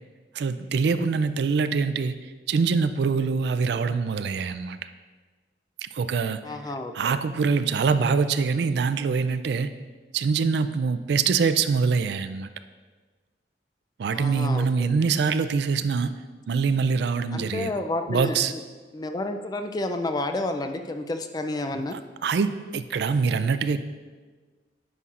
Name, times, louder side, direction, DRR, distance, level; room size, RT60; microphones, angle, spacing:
voice 1, 0.3-4.8 5.8-6.4 6.9-9.7 10.1-12.5 14.0-16.1 16.5-17.7 18.1-18.5 22.2-23.8, right 5 dB, 65° right, 11 dB, 0.3 m, -24 dB
voice 2, 6.4-7.2 14.1-15.0 17.3-18.6 18.9-22.0, left 2 dB, 20° left, 7 dB, 0.3 m, -30 dB
9.9 x 5.5 x 2.5 m, 1.4 s
head